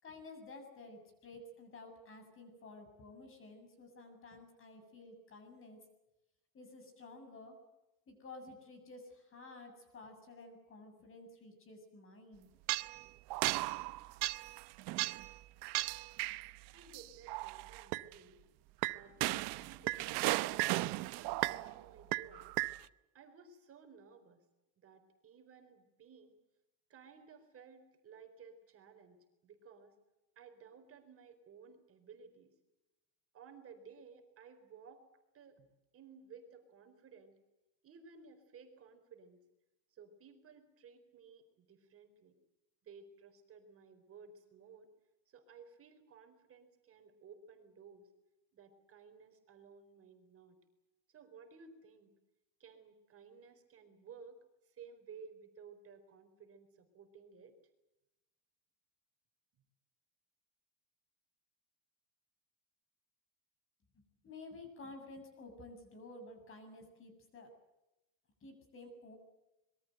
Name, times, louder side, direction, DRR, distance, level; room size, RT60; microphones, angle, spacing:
voice 1, 0.0-5.8 6.5-7.6 8.1-12.5 64.0-67.5 68.4-69.2, left 2 dB, 25° left, 7 dB, 7.5 m, -52 dB
sound 1, 12.7-13.0 13.3-15.3 15.6-16.5 16.9-18.1 18.8-21.8 22.1-22.8, right 20 dB, 55° right, 0.9 m, -35 dB
voice 2, 16.7-18.4 18.9-20.2 20.7-22.6 23.1-24.4 24.8-26.4 26.9-30.0 30.4-32.5 33.3-35.0 35.3-35.7 35.9-37.4 37.8-39.4 39.9-42.3 42.8-44.9 45.3-48.1 48.5-50.6 51.1-52.1 52.6-54.4 54.6-57.5, right 6 dB, 30° right, 6 dB, 4.2 m, -57 dB
26.0 x 23.0 x 7.9 m, 0.96 s
cardioid pair, 165°, 46 cm